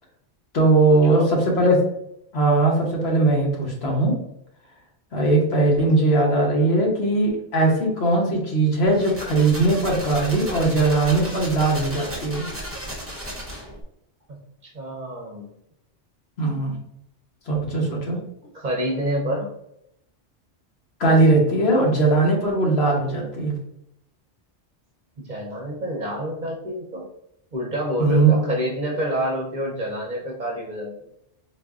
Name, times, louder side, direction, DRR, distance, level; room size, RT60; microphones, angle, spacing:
voice 1, 0.5-1.8 2.3-4.1 5.1-12.5 16.4-16.8 17.5-18.2 21.0-23.5 28.0-28.4, right 2 dB, 70° left, -1 dB, 1.1 m, -19 dB
sound 1, 8.8-13.8, equal, 15° right, 0.6 m, -34 dB
voice 2, 14.3-15.5 18.5-19.5 25.2-27.1 27.5-31.1, right 1 dB, 45° right, -2 dB, 0.8 m, -28 dB
3.9 x 2.6 x 2.3 m, 0.77 s
omnidirectional pair, 1.1 m